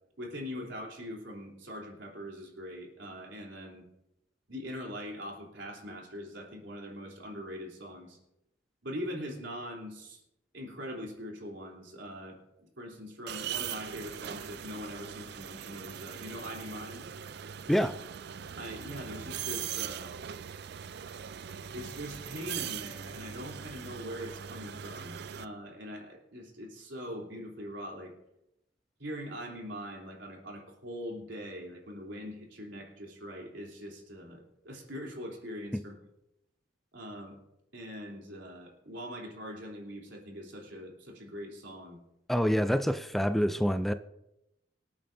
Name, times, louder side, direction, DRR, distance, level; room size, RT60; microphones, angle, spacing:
voice 1, 0.2-3.8 4.5-8.2 8.8-10.2 10.5-17.0 18.6-20.1 21.7-28.1 29.0-35.9 36.9-37.4 37.7-42.0, equal, 80° right, 3.4 m, -42 dB
sound 1, 13.3-25.4, right 9 dB, 65° right, 0.4 m, -41 dB
voice 2, 42.3-43.9, equal, ahead, 0.4 m, -26 dB
25.5 x 8.7 x 2.7 m
head